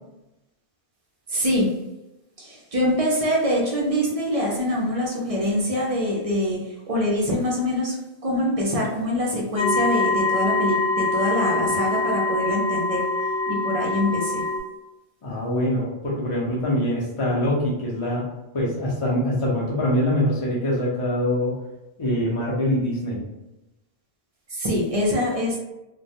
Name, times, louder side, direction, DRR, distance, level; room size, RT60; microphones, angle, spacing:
voice 1, 1.3-1.8 2.4-8.0 8.2-13.1 13.5-14.4 24.5-25.6, left 1 dB, 45° right, -2 dB, 0.5 m, -24 dB
sound 1, 9.6-14.6, left 2 dB, 80° left, 0.9 m, -24 dB
voice 2, 15.2-18.3 18.5-21.5 22.0-23.2, left 1 dB, 35° left, -6 dB, 0.5 m, -24 dB
2.2 x 2.2 x 2.7 m, 0.97 s
omnidirectional pair, 1.1 m